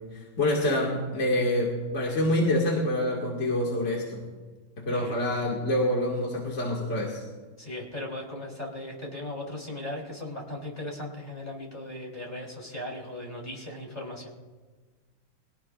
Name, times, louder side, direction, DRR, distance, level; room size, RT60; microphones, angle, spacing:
voice 1, 0.1-4.2 4.8-7.2, left 1 dB, 35° left, -2 dB, 2.4 m, -26 dB
voice 2, 4.9-5.2 7.6-14.3, left 1 dB, 20° left, -2 dB, 3.8 m, -37 dB
23.0 x 17.0 x 2.5 m, 1.4 s
omnidirectional pair, 2.1 m